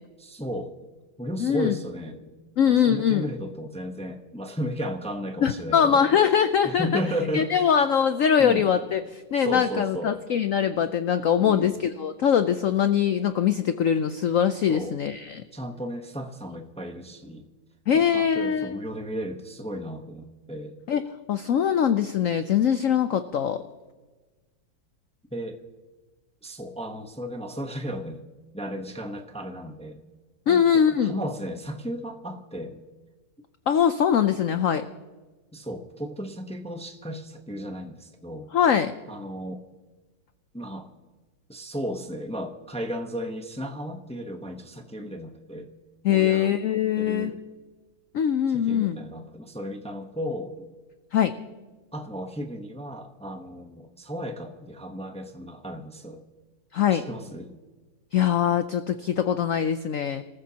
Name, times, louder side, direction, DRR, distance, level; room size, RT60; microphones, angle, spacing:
voice 1, 0.2-0.7 1.2-2.2 2.7-6.0 6.6-7.7 8.4-8.7 9.4-10.2 11.4-11.7 14.7-15.0 15.5-17.4 17.9-20.8 25.3-25.6 26.4-28.2 28.5-30.0 30.5-32.8 35.5-38.5 39.1-39.6 40.5-40.9 41.5-45.7 46.1-46.5 47.0-47.4 48.5-50.7 51.9-56.2 56.9-57.5, equal, 10° left, 4 dB, 0.3 m, -34 dB
voice 2, 1.4-1.7 2.6-3.3 5.4-7.0 7.3-15.4 17.9-18.8 20.9-21.0 21.3-23.6 30.5-31.1 33.7-34.9 38.5-38.9 46.0-47.3 48.1-49.0 51.1-51.3 56.7-57.0 58.1-60.2, left 8 dB, 90° left, 10 dB, 0.7 m, -22 dB
25.5 x 14.5 x 2.9 m, 1.3 s
omnidirectional pair, 2.1 m